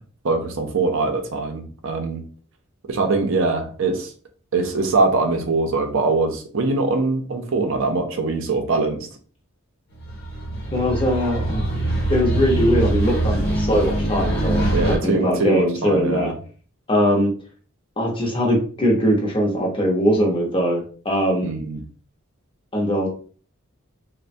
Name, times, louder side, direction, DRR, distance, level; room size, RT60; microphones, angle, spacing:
voice 1, 0.2-2.2 2.9-4.1 4.5-9.1 14.7-16.3 21.4-21.8, right 3 dB, 60° right, 4 dB, 0.5 m, -22 dB
sound 1, 10.0-15.0, right 1 dB, 50° left, 1.0 m, -23 dB
voice 2, 10.7-11.7 12.1-16.3 16.9-17.3 18.0-21.5 22.7-23.1, equal, 25° left, 0 dB, 0.7 m, -21 dB
3.2 x 2.1 x 2.6 m, 0.41 s
head